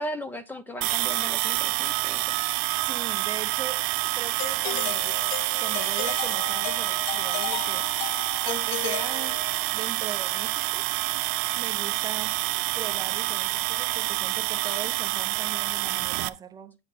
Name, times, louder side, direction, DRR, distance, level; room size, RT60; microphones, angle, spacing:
voice 1, 0.0-2.3, equal, 10° left, 0.8 m, -36 dB
sound 1, 0.8-16.3, right 20 dB, 60° right, 0.7 m, -27 dB
voice 2, 2.8-3.9 4.1-5.2 5.6-7.9 8.4-9.4 9.7-10.9 11.6-12.4 12.7-16.8, right 8 dB, 20° right, 0.8 m, -39 dB
Doorbell, 4.4-9.8, left 18 dB, 65° left, 0.4 m, -35 dB
8.8 x 5.7 x 4.2 m
supercardioid pair, 140°, 17 cm